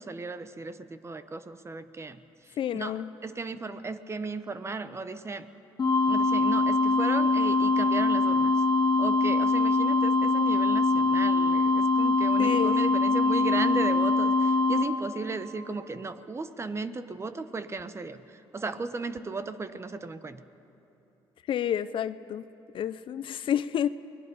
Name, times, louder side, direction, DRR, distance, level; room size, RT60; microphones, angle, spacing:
voice 1, 0.0-2.2 2.7-2.9 3.2-5.5 6.1-8.5 9.0-18.2 18.5-20.4, right 3 dB, 25° right, 11 dB, 1.1 m, -35 dB
voice 2, 2.6-3.1 12.4-12.8 21.5-22.4 22.7-23.9, left 10 dB, 60° left, 15 dB, 0.6 m, -29 dB
sound 1, 5.8-14.8, left 3 dB, 40° left, 2.0 m, -23 dB
29.0 x 20.5 x 5.5 m, 3.0 s
cardioid pair, 80°, 10 cm